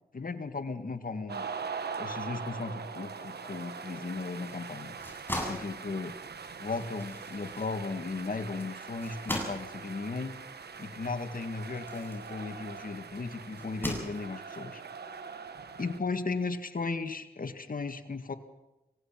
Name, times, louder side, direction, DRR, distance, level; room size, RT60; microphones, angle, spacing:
voice 1, 0.1-1.5 2.0-5.0 5.4-6.1 6.6-10.3 10.8-14.8 15.8-18.3, left 4 dB, 60° left, 8 dB, 2.0 m, -36 dB
sound 1, 1.3-16.0, right 5 dB, 85° right, 1.4 m, -42 dB
sound 2, 5.0-12.9 13.5-14.6, equal, 15° left, 7.9 m, -40 dB
25.5 x 17.0 x 6.0 m, 0.97 s
cardioid pair, 45°, 16 cm